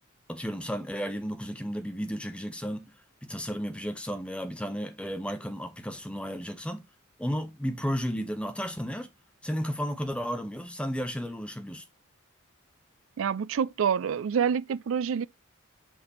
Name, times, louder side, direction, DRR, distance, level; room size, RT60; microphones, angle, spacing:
voice 1, 0.3-2.9 3.2-6.8 7.2-9.1 9.4-11.8, equal, 5° left, 1.0 m, -33 dB
voice 2, 13.2-15.2, right 7 dB, 65° right, 0.4 m, -27 dB
6.4 x 6.0 x 3.0 m
head